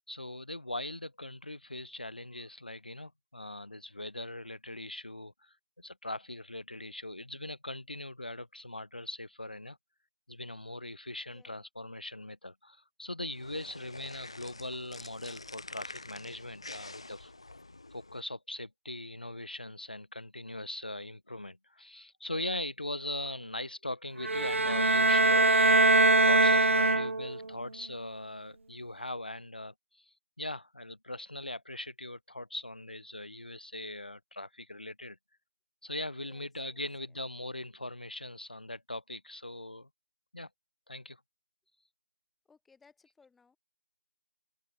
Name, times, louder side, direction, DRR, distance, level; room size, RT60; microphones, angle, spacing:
voice 1, 0.1-9.8 10.3-17.3 17.9-25.8 26.2-30.0 30.4-35.2 35.8-39.9 40.3-40.5 40.9-41.2, left 1 dB, 45° left, 2.1 m, -40 dB
sound 1, 13.2-18.2, left 2 dB, 25° left, 2.7 m, -47 dB
sound 2, 24.2-27.5, right 3 dB, 75° right, 0.3 m, -23 dB
voice 2, 36.2-37.2 42.4-43.6, left 5 dB, ahead, 1.2 m, -64 dB
open air
figure-of-eight pair, 180°, 7 cm